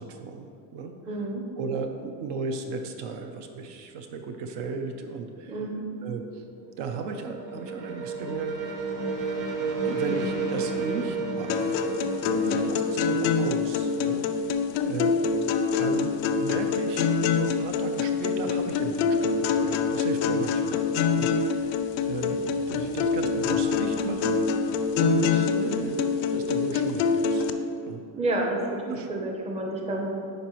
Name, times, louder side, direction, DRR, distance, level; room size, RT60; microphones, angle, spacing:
voice 1, 0.0-1.0 1.6-5.6 6.0-6.2 6.8-8.5 9.8-11.7 12.5-14.2 14.8-15.1 15.8-20.9 21.2-21.7 22.0-22.4 22.7-24.4 24.9-27.5 27.9-28.0 28.9-29.1, right 4 dB, 60° right, 5 dB, 0.7 m, -35 dB
voice 2, 1.1-1.4 5.5-5.8 12.3-12.6 25.5-25.7 28.2-30.1, right 2 dB, 15° right, 0 dB, 0.6 m, -30 dB
sound 1, 6.5-14.2, right 3 dB, 40° right, 1.3 m, -32 dB
sound 2, 11.5-27.5, left 5 dB, 70° left, 0.5 m, -25 dB
10.5 x 4.2 x 3.0 m, 2.6 s
cardioid pair, 135°, 46 cm